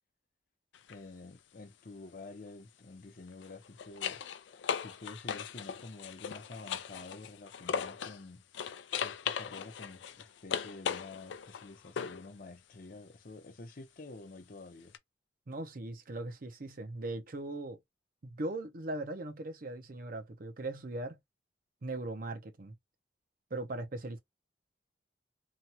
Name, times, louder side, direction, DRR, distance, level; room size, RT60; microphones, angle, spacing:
sound 1, 0.7-1.0 3.3-8.2 8.5-12.3 14.9-15.0, left 7 dB, 85° left, 0.4 m, -38 dB
voice 1, 0.9-4.2 4.8-8.4 9.0-14.9, left 3 dB, 50° left, 0.7 m, -49 dB
voice 2, 15.5-17.8 18.2-21.2 21.8-22.7 23.5-24.2, right 2 dB, 50° right, 0.6 m, -39 dB
2.8 x 2.3 x 2.8 m
head